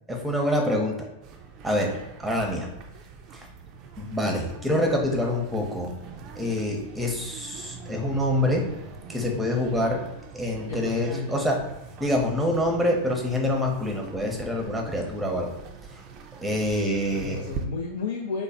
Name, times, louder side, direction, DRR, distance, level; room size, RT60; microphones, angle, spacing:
voice 1, 0.1-1.1 1.6-2.7 3.3-3.5 4.0-5.9 6.4-8.7 9.1-10.0 10.3-11.6 12.0-15.5 16.4-17.4, left 1 dB, 5° right, 0 dB, 0.7 m, -26 dB
sound 1, 1.2-17.7, right 5 dB, 40° right, 0.4 m, -43 dB
voice 2, 9.4-9.8 10.7-11.4 17.1-18.4, left 4 dB, 60° left, 0 dB, 0.4 m, -33 dB
3.1 x 2.1 x 4.1 m, 0.90 s
figure-of-eight pair, 90°, 0 cm